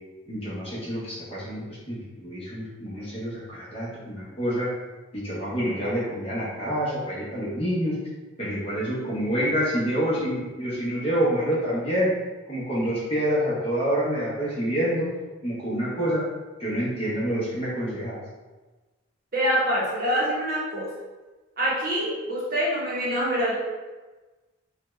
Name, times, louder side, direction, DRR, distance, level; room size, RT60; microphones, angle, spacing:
voice 1, 0.3-4.7 5.1-8.0 8.4-12.1 12.5-15.1 15.4-16.2 16.6-18.2, equal, 30° left, -7 dB, 0.8 m, -27 dB
voice 2, 19.3-20.9 21.6-23.5, equal, 45° right, -6 dB, 0.8 m, -25 dB
3.4 x 2.3 x 3.1 m, 1.2 s
head